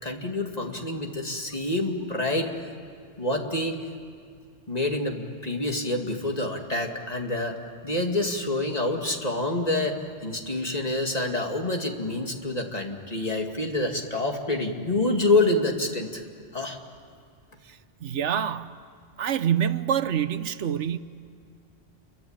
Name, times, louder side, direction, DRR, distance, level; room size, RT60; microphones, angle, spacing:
voice 1, 0.0-2.5 3.2-3.8 4.7-16.2 16.5-16.8, left 2 dB, 35° left, 2 dB, 2.4 m, -27 dB
voice 2, 18.0-18.7 19.2-21.0, right 9 dB, 90° right, 11 dB, 1.2 m, -26 dB
29.0 x 23.5 x 8.9 m, 2.3 s
omnidirectional pair, 1.2 m